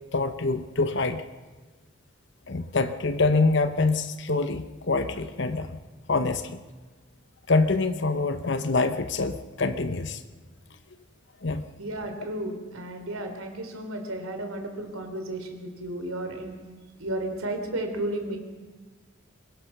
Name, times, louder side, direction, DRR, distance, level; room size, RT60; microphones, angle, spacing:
voice 1, 0.1-1.2 2.5-5.8 6.1-6.6 7.5-10.2 11.4-11.6, left 3 dB, 55° left, 10 dB, 0.9 m, -25 dB
voice 2, 11.8-16.5 17.0-18.4, right 1 dB, 85° right, 5 dB, 3.6 m, -33 dB
23.5 x 21.0 x 6.0 m, 1.3 s
head